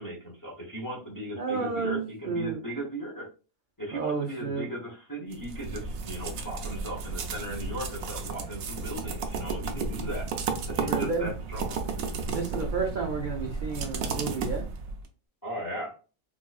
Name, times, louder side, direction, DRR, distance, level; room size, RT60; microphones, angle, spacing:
voice 1, 0.0-3.3 3.8-10.3 10.6-11.9 15.4-16.0, right 1 dB, 20° left, -1 dB, 0.6 m, -37 dB
voice 2, 1.4-2.6 3.9-4.7 10.9-11.3 12.2-14.6, right 5 dB, 60° right, 0 dB, 0.5 m, -31 dB
sound 1, 5.3-15.1, right 4 dB, 85° right, 1.0 m, -33 dB
3.9 x 2.3 x 2.3 m, 0.35 s
omnidirectional pair, 1.4 m